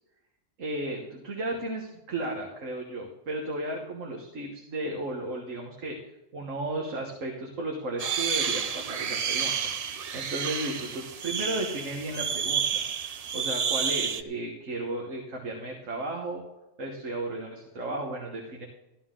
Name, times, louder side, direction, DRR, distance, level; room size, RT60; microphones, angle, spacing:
voice 1, 0.6-6.0 6.3-16.4 16.8-18.7, right 2 dB, 75° right, 0 dB, 1.8 m, -34 dB
sound 1, 8.0-14.2, right 6 dB, 60° right, 0.4 m, -30 dB
14.0 x 11.5 x 3.8 m, 0.97 s
omnidirectional pair, 1.4 m